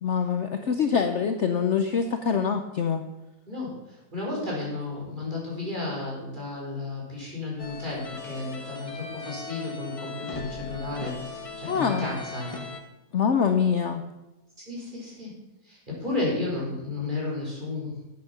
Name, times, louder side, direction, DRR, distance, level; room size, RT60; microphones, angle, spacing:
voice 1, 0.0-3.0 11.7-12.1 13.1-14.0, left 6 dB, 55° left, 7 dB, 0.9 m, -24 dB
voice 2, 3.5-12.5 14.7-15.3 15.6-18.0, left 2 dB, 30° right, -4 dB, 4.8 m, -33 dB
sound 1, 7.6-12.8, left 4 dB, 25° left, 1.1 m, -38 dB
11.5 x 8.5 x 5.9 m, 1.0 s
omnidirectional pair, 1.7 m